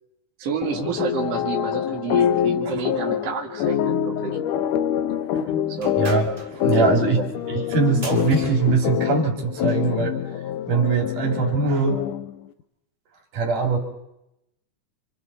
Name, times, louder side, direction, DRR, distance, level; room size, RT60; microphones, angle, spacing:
voice 1, 0.4-4.4 5.7-6.0 6.8-7.2, right 7 dB, 55° right, 0 dB, 3.2 m, -30 dB
sound 1, 0.6-12.4, left 10 dB, 85° left, 2.5 m, -25 dB
sound 2, 5.8-9.9, right 2 dB, 20° right, 2.0 m, -40 dB
voice 2, 6.0-7.2 7.5-10.2 10.7-12.0 13.3-13.8, right 4 dB, 85° right, 2 dB, 4.5 m, -22 dB
30.0 x 27.0 x 4.2 m, 0.85 s
omnidirectional pair, 3.6 m